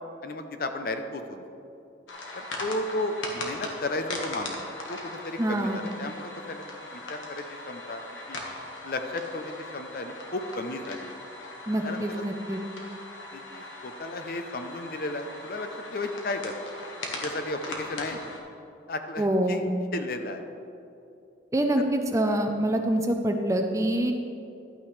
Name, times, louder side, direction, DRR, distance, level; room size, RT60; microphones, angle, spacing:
voice 1, 0.2-1.4 2.3-4.6 4.9-6.6 6.9-8.0 8.3-8.4 8.8-11.1 11.8-12.2 13.3-16.6 17.1-18.2 18.9-19.6 19.9-20.5 21.8-21.9, left 2 dB, 50° left, 7 dB, 0.6 m, -34 dB
sound 1, 2.1-18.4, left 2 dB, 85° left, 1.4 m, -39 dB
voice 2, 5.4-5.9 11.7-12.6 19.2-19.7 21.5-24.1, right 1 dB, 15° right, 4 dB, 0.5 m, -25 dB
12.0 x 8.8 x 3.2 m, 2.7 s
head